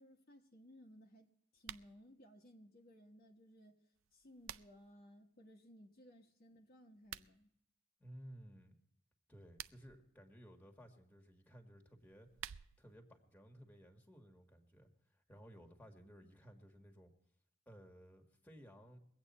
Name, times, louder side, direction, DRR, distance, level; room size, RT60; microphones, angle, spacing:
voice 1, 0.0-3.8 4.1-7.5 16.2-16.3, equal, 45° left, 1.3 m, -61 dB
sound 1, 1.6-1.9 4.0-4.9 6.9-7.3 9.3-10.0 12.0-13.0, right 11 dB, 70° right, 0.4 m, -51 dB
voice 2, 8.0-8.8 9.3-12.3 12.8-17.1 17.7-19.0, equal, 10° left, 1.7 m, -58 dB
22.5 x 8.7 x 4.2 m
head